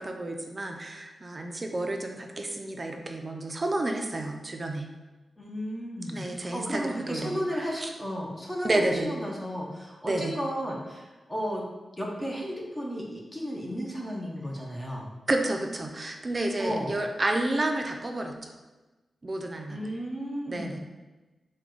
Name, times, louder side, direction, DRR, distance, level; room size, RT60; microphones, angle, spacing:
voice 1, 0.0-4.9 6.1-7.9 8.6-9.1 10.0-10.3 15.3-18.5 19.2-19.9 20.5-20.8, right 2 dB, 35° right, 3 dB, 0.4 m, -30 dB
voice 2, 5.4-11.6 12.0-15.1 16.6-16.9 19.7-20.8, equal, 20° left, -3 dB, 0.8 m, -34 dB
4.6 x 2.3 x 3.8 m, 1.2 s
cardioid pair, 75°, 0 cm